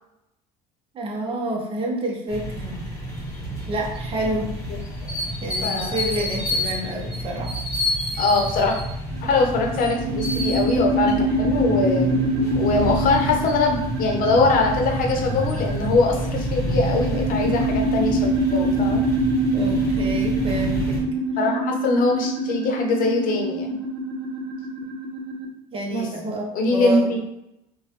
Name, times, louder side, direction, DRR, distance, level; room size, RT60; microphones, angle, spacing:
voice 1, 0.9-2.9 3.7-4.5 5.4-7.5 19.5-21.0 25.7-27.2, right 1 dB, 35° right, 0 dB, 0.7 m, -28 dB
sound 1, 2.3-21.0, equal, 20° left, 1.2 m, -29 dB
voice 2, 5.6-6.0 8.2-8.7 9.2-12.2 12.5-19.0 21.4-23.8 25.9-26.1 26.5-27.2, left 3 dB, 60° left, 2 dB, 0.7 m, -22 dB
sound 2, 9.1-25.5, right 1 dB, 75° right, 0.7 m, -25 dB
2.9 x 2.2 x 2.9 m, 0.84 s
supercardioid pair, 90°, 16 cm